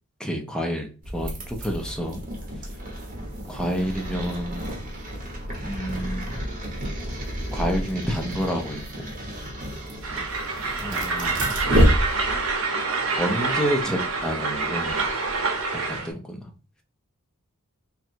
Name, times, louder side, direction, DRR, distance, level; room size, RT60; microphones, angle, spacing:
voice 1, 0.2-2.2 3.5-4.8 5.6-6.5 7.5-9.1 10.8-11.6 13.1-15.0 15.7-16.5, equal, 5° left, 2 dB, 0.7 m, -29 dB
sound 1, 1.0-12.6, equal, 40° right, 1.3 m, -29 dB
Train, 10.0-16.1, right 4 dB, 70° right, 1.0 m, -27 dB
3.1 x 2.5 x 4.4 m, 0.34 s
head